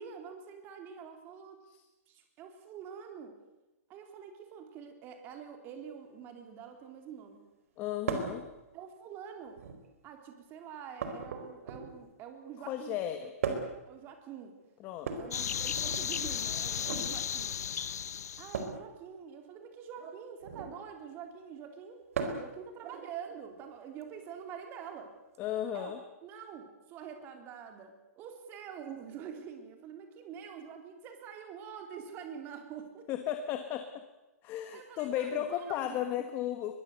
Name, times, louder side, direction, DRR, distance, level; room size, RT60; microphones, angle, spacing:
voice 1, 0.0-1.6 2.1-3.4 3.9-7.4 8.7-9.6 10.0-13.3 13.9-14.6 15.1-17.6 18.4-25.1 25.7-33.1 34.7-36.3, right 7 dB, 25° right, 5 dB, 3.7 m, -46 dB
voice 2, 7.8-8.5 12.7-13.3 14.8-15.1 25.4-26.0 33.1-33.9 34.4-36.7, left 11 dB, 25° left, 8 dB, 1.5 m, -34 dB
sound 1, 8.1-8.4 9.5-10.0 11.0-12.1 13.4-13.9 15.0-16.1 16.7-17.1 18.5-18.8 20.4-20.8 22.1-22.6 24.0-24.1 25.3-25.4, right 5 dB, 60° right, 4.5 m, -36 dB
sound 2, 15.3-18.7, left 8 dB, 90° left, 0.7 m, -34 dB
22.5 x 22.0 x 8.1 m, 1.0 s
hypercardioid pair, 160°, 8 cm